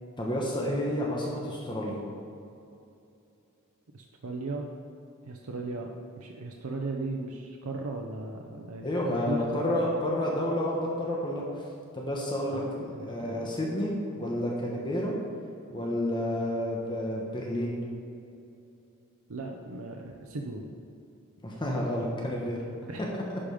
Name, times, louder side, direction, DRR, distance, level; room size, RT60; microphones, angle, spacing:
voice 1, 0.2-2.0 8.8-11.4 11.9-15.1 15.7-17.8 21.4-22.6 23.1-23.4, left 1 dB, 20° left, -3 dB, 1.0 m, -30 dB
voice 2, 3.9-4.7 5.3-9.7 12.5-12.6 12.9-13.5 19.3-20.7 22.9-23.1, right 3 dB, 80° right, 1 dB, 0.7 m, -37 dB
11.0 x 5.0 x 5.0 m, 2.7 s
head